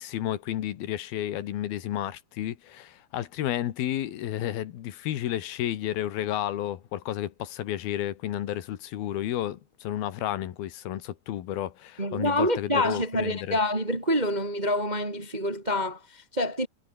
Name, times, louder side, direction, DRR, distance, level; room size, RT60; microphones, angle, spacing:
voice 1, 0.0-13.6, left 12 dB, 85° left, 3.5 m, -32 dB
voice 2, 12.0-16.7, left 1 dB, 15° right, 1.9 m, -27 dB
omnidirectional pair, 4.2 m